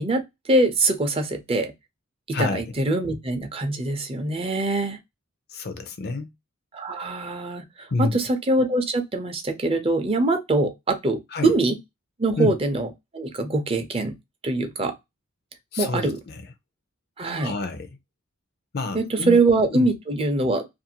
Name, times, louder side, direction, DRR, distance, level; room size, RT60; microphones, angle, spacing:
voice 1, 0.0-1.7 2.3-5.0 6.7-11.8 12.2-14.2 14.4-14.9 15.8-16.2 17.2-17.5 18.9-20.6, right 2 dB, 30° right, 0.5 m, -23 dB
voice 2, 5.5-6.3 7.9-8.2 11.3-11.5 12.4-12.5 15.7-16.4 17.4-17.9 18.7-19.4 19.7-19.9, left 3 dB, 50° left, 0.5 m, -28 dB
2.5 x 2.4 x 2.8 m
head